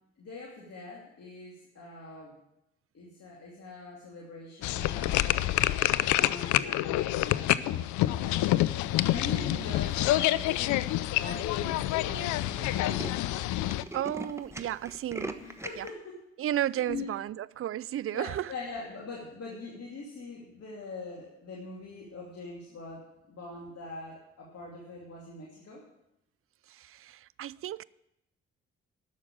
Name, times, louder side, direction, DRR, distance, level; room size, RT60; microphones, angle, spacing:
voice 1, 0.2-2.4 2.9-5.6 6.0-8.4 9.1-13.0 15.4-16.2 16.7-17.1 18.1-25.8, left 3 dB, 55° left, 2.8 m, -43 dB
sound 1, 4.6-13.8, left 15 dB, 75° left, 0.5 m, -27 dB
Tools, 9.8-10.3 10.9-11.0 11.2-11.3 11.5-11.7 12.0-12.1 12.4-15.9, right 1 dB, 10° right, 1.2 m, -41 dB
voice 2, 13.9-15.4 15.8-15.9 16.4-18.5 26.7-27.8, right 12 dB, 45° right, 0.4 m, -33 dB
11.5 x 6.5 x 8.7 m
hypercardioid pair, 45°, 30 cm